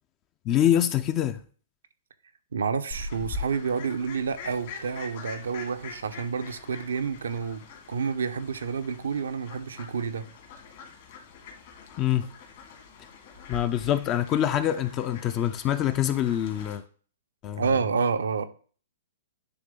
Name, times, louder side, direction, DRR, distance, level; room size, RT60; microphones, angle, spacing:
voice 1, 0.5-1.4 12.0-12.3 13.5-16.8 17.4-17.6, left 11 dB, 30° left, 0.4 m, -25 dB
voice 2, 2.5-10.3 17.6-18.5, right 5 dB, 85° right, 0.6 m, -29 dB
Fowl, 2.9-16.8, left 4 dB, 55° left, 2.0 m, -43 dB
9.5 x 3.4 x 3.7 m
hypercardioid pair, 135°, 0 cm